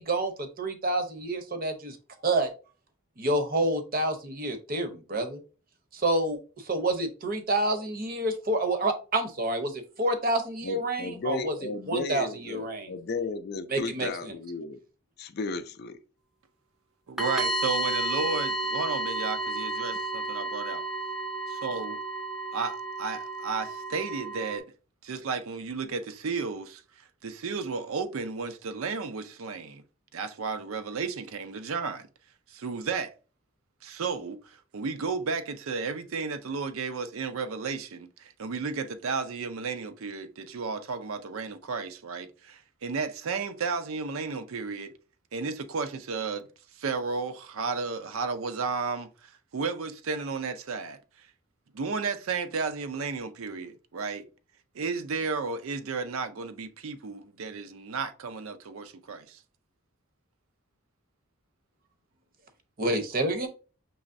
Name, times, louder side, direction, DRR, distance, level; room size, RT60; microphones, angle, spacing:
voice 1, 0.0-2.0 2.2-2.5 3.2-5.4 5.9-6.4 6.7-11.5 11.9-12.9 13.7-14.3 62.8-63.5, right 1 dB, 45° right, 0.7 m, -28 dB
voice 2, 10.6-14.8 15.2-16.0, left 3 dB, 50° left, 0.4 m, -34 dB
voice 3, 17.1-20.8 21.6-22.0 22.5-24.7 25.0-29.8 30.1-32.1 32.5-33.1 33.8-44.9 45.3-46.5 46.8-51.3 51.7-54.2 54.7-59.4, right 4 dB, 80° right, 0.5 m, -33 dB
sound 1, 17.2-24.6, right 2 dB, ahead, 0.5 m, -32 dB
5.4 x 3.0 x 2.5 m
head